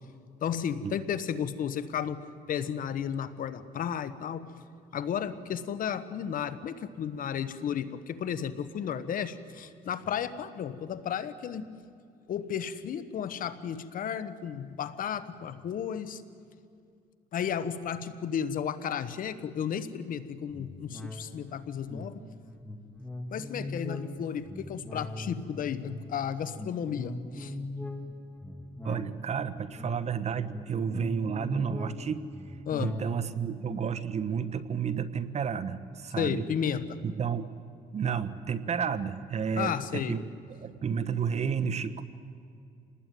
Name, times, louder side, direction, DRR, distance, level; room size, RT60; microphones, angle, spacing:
voice 1, 0.4-2.2 2.5-4.5 4.9-11.7 12.3-16.2 17.3-22.2 23.3-27.5 32.7-32.9 36.2-37.0 39.6-40.2, left 8 dB, 55° left, 13 dB, 1.4 m, -33 dB
sound 1, 20.5-36.3 36.7-36.8, left 1 dB, 5° left, 2.9 m, -41 dB
voice 2, 28.8-32.2 32.8-36.5 37.0-37.5 37.9-40.2 40.5-42.0, right 7 dB, 40° right, 13 dB, 1.3 m, -31 dB
27.5 x 20.0 x 9.4 m, 2.4 s
cardioid pair, 110°, 17 cm